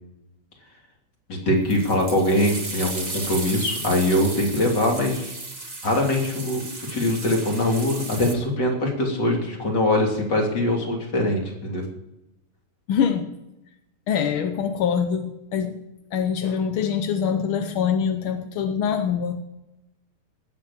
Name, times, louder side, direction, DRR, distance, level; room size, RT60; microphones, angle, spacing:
voice 1, 1.3-5.3 5.8-11.8, left 1 dB, 35° left, 0 dB, 3.3 m, -23 dB
sound 1, 1.7-8.3, right 2 dB, 20° right, 1.4 m, -35 dB
voice 2, 12.9-13.3 14.1-15.8 16.1-19.4, left 7 dB, 65° left, 7 dB, 1.3 m, -24 dB
18.5 x 7.9 x 7.2 m, 0.94 s
omnidirectional pair, 3.3 m